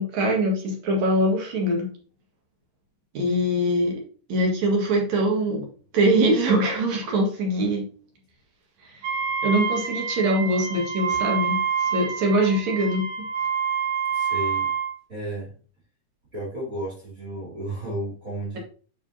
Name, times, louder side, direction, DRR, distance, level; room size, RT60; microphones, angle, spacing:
voice 1, 0.0-1.9 3.1-4.0 4.3-5.7 5.9-7.8 8.8-9.0 9.4-13.0, right 1 dB, 60° right, 0 dB, 3.1 m, -23 dB
Wind instrument woodwind instrument, 9.0-15.0, right 6 dB, 90° right, 2.9 m, -27 dB
voice 2, 14.1-14.7 15.1-15.5 16.3-18.6, right 1 dB, 25° right, -4 dB, 3.0 m, -33 dB
9.3 x 5.0 x 2.8 m, 0.40 s
omnidirectional pair, 3.7 m